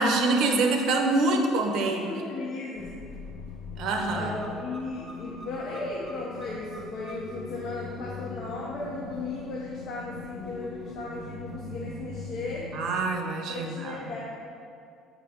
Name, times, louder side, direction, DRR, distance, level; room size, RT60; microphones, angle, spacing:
voice 1, 0.0-2.1 3.8-4.3 12.7-14.0, right 2 dB, 60° right, 3 dB, 0.8 m, -25 dB
voice 2, 1.8-2.9 4.1-12.7 13.5-14.2, left 3 dB, 50° left, -5 dB, 0.9 m, -36 dB
sound 1, 2.8-13.0, left 3 dB, 15° left, 0.7 m, -41 dB
7.5 x 4.8 x 3.6 m, 2.4 s
cardioid pair, 150°, 0 cm